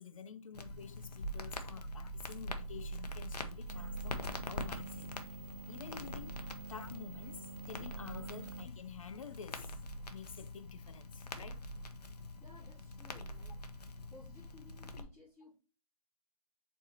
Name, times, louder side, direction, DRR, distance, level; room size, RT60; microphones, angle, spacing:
voice 1, 0.0-5.1 5.7-9.7 10.1-11.6, left 6 dB, 55° left, 0.6 m, -50 dB
Crackle, 0.5-15.0, left 1 dB, 85° left, 0.9 m, -44 dB
sound 1, 3.7-8.7, right 6 dB, 70° right, 0.8 m, -49 dB
voice 2, 12.4-13.5 14.1-15.6, left 2 dB, 10° left, 2.7 m, -58 dB
4.4 x 4.1 x 2.8 m
hypercardioid pair, 160°, 20 cm